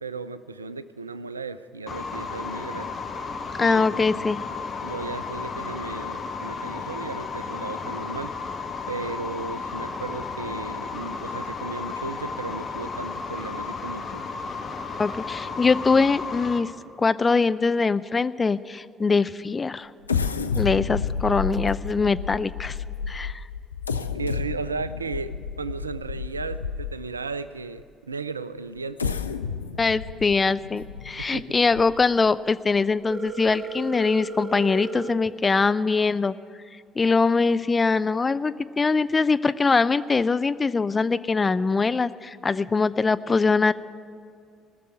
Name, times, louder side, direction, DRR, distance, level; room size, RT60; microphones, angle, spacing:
voice 1, 0.0-2.9 3.6-4.3 4.8-8.3 8.9-14.4 24.1-29.2 31.2-31.6, right 4 dB, 90° right, 15 dB, 0.3 m, -35 dB
sound 1, 1.9-16.6, left 4 dB, 45° left, 1.3 m, -33 dB
voice 2, 3.6-4.4 15.0-16.7 17.0-19.9 20.5-22.8 23.1-23.4 29.8-36.3 37.0-43.7, left 4 dB, 30° left, 14 dB, 0.4 m, -22 dB
sound 2, 20.0-27.2 27.8-27.9 28.8-32.3 32.8-32.9 33.3-33.5, left 6 dB, 85° left, 0.4 m, -31 dB
Telephone, 33.1-35.1, right 3 dB, 35° right, 1.1 m, -35 dB
19.5 x 6.8 x 9.0 m, 2.3 s
figure-of-eight pair, 50°, 0 cm